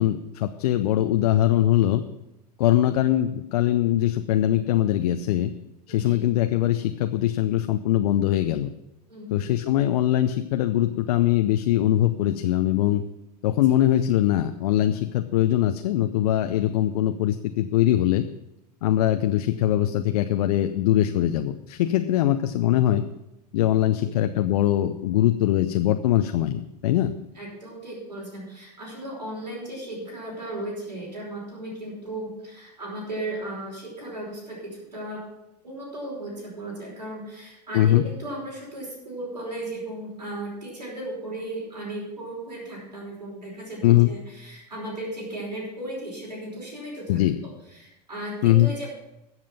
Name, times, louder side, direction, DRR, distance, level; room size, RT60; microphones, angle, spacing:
voice 1, 0.0-2.0 2.6-5.5 5.9-8.7 9.3-13.0 13.4-18.2 18.8-23.0 23.5-27.1 37.7-38.0 43.8-44.1 47.1-47.4 48.4-48.7, left 13 dB, 65° left, 8 dB, 0.7 m, -22 dB
voice 2, 5.9-6.2 9.1-9.3 19.5-19.7 23.9-24.2 27.3-35.2 35.6-47.2 47.7-48.9, right 1 dB, 90° right, -4 dB, 5.1 m, -36 dB
13.5 x 7.4 x 5.8 m, 0.87 s
hypercardioid pair, 90°, 21 cm